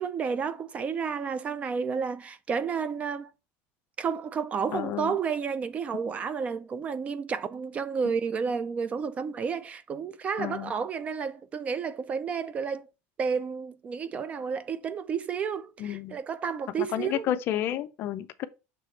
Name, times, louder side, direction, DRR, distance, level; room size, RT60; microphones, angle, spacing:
voice 1, 0.0-3.3 4.0-12.9 13.2-17.3, right 6 dB, 25° right, 0.4 m, -31 dB
voice 2, 4.7-5.2 10.4-10.7 15.8-16.2 16.8-18.5, left 12 dB, 40° left, 0.5 m, -31 dB
6.7 x 3.3 x 4.4 m
cardioid pair, 160°, 6 cm